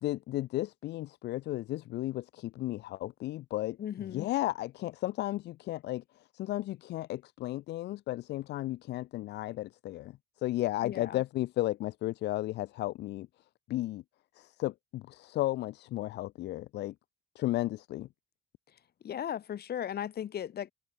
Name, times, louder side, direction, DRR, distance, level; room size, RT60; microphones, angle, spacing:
voice 1, 0.0-6.0 6.3-13.3 13.7-14.0 14.4-16.9 17.4-18.1, left 16 dB, 85° left, 2.3 m, -34 dB
voice 2, 3.8-4.3 10.8-11.2 19.0-20.7, left 10 dB, 70° left, 4.8 m, -36 dB
supercardioid pair, 65°, 17 cm